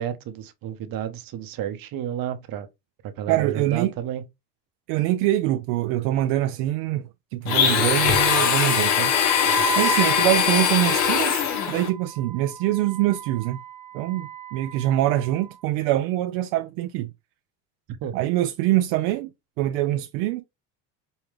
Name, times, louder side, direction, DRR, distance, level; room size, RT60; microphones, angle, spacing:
voice 1, 0.0-2.7 3.0-4.3 17.9-18.1, right 10 dB, 55° right, 0.9 m, -31 dB
voice 2, 3.3-3.9 4.9-7.0 7.3-9.1 9.8-13.6 13.9-17.1 18.1-19.3 19.6-20.4, right 14 dB, 80° right, 0.6 m, -24 dB
Domestic sounds home sounds, 7.5-11.9, left 7 dB, 80° left, 1.1 m, -21 dB
Wind instrument woodwind instrument, 9.4-15.6, right 4 dB, 15° right, 0.7 m, -35 dB
5.5 x 2.2 x 3.2 m
supercardioid pair, 95°, 42 cm